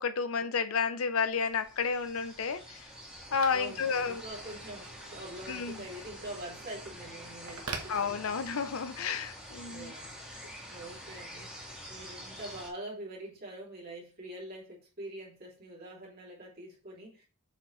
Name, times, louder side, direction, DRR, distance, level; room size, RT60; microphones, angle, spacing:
voice 1, 0.0-2.8 3.3-4.2 5.5-5.7 7.9-9.9, left 5 dB, 70° left, 0.7 m, -31 dB
Telephone, 1.0-8.8, right 4 dB, 85° right, 1.2 m, -48 dB
sound 1, 1.5-12.7, equal, 5° right, 2.3 m, -47 dB
voice 2, 3.5-8.3 9.6-10.2 10.6-11.5 11.9-17.2, right 1 dB, 45° right, 2.9 m, -45 dB
7.4 x 4.7 x 3.2 m
head